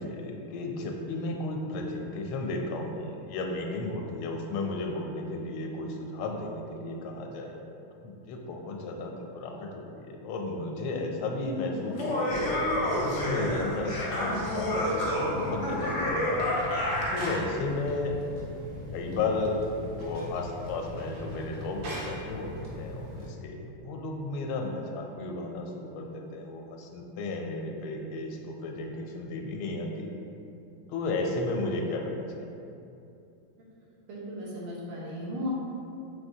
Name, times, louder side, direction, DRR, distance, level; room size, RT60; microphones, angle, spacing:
voice 1, 0.0-7.6 8.0-12.3 13.0-16.2 17.1-18.2 18.9-19.6 20.0-30.1 30.9-32.5, left 2 dB, 85° left, 1 dB, 1.4 m, -34 dB
Laughter, 11.8-17.4, left 1 dB, 65° left, 0.7 m, -29 dB
sound 1, 12.3-23.3, left 1 dB, 65° right, 1.1 m, -40 dB
voice 2, 34.1-35.5, equal, 90° right, -5 dB, 1.7 m, -36 dB
4.7 x 3.3 x 2.7 m, 2.7 s
omnidirectional pair, 2.2 m